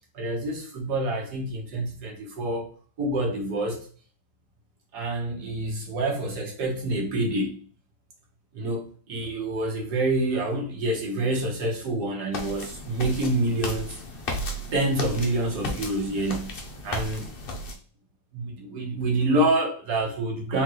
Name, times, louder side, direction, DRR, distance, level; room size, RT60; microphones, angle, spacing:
voice 1, 0.1-2.7 3.0-3.9 4.9-7.6 8.5-14.0 14.7-16.5 16.8-17.3 18.3-20.6, right 1 dB, 55° right, -1 dB, 1.7 m, -27 dB
sound 1, 12.3-17.7, left 1 dB, 65° left, 0.5 m, -34 dB
3.9 x 3.8 x 3.1 m, 0.42 s
omnidirectional pair, 2.3 m